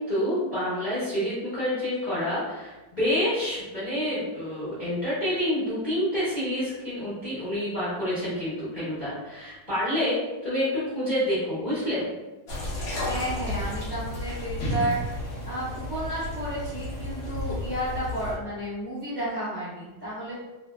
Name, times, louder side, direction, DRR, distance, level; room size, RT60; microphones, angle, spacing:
voice 1, 0.0-10.7 10.9-12.1, equal, 35° left, -12 dB, 0.8 m, -28 dB
sound 1, 12.5-18.4, left 1 dB, 60° left, 0.9 m, -32 dB
voice 2, 13.0-20.4, right 1 dB, 30° right, -12 dB, 1.1 m, -32 dB
2.7 x 2.6 x 2.2 m, 1.1 s
omnidirectional pair, 1.9 m